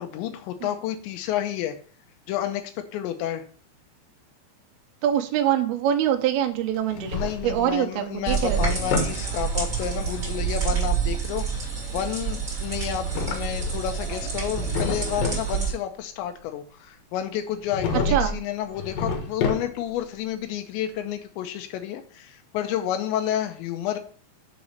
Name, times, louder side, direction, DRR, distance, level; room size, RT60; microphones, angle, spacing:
voice 1, 0.0-1.8 2.3-2.6 2.9-3.4 7.1-11.7 11.9-24.0, left 11 dB, 85° left, 7 dB, 3.0 m, -30 dB
voice 2, 5.0-8.6 18.1-18.3, right 10 dB, 80° right, 4 dB, 2.3 m, -24 dB
Drawer open or close, 6.7-7.7 8.2-9.2 12.8-14.0 14.4-15.5 17.7-18.4 18.7-20.0, left 3 dB, 65° left, 2.5 m, -29 dB
sound 1, 8.3-15.7, right 6 dB, 25° right, 2.4 m, -28 dB
7.2 x 4.1 x 6.4 m, 0.44 s
omnidirectional pair, 5.3 m